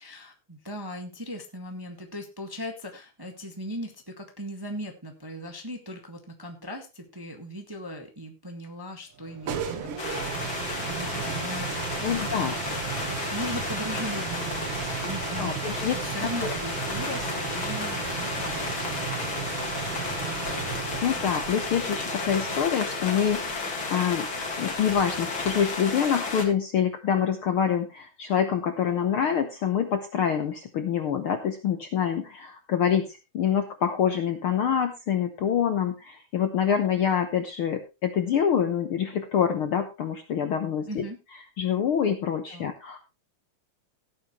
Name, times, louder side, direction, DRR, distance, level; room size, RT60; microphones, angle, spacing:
voice 1, 0.0-10.6 10.8-13.0 13.3-14.7 15.0-15.6 15.9-20.6 40.8-41.2 42.5-42.7, equal, 10° right, 3 dB, 1.1 m, -39 dB
sound 1, 9.2-25.9, right 7 dB, 55° right, 2.1 m, -36 dB
sound 2, 10.0-26.5, left 4 dB, 40° left, 3.0 m, -33 dB
voice 2, 12.0-12.6 15.3-16.0 21.0-24.3 24.6-41.0 41.6-43.0, left 8 dB, 65° left, 7 dB, 1.4 m, -26 dB
16.5 x 8.9 x 3.1 m, 0.28 s
omnidirectional pair, 3.5 m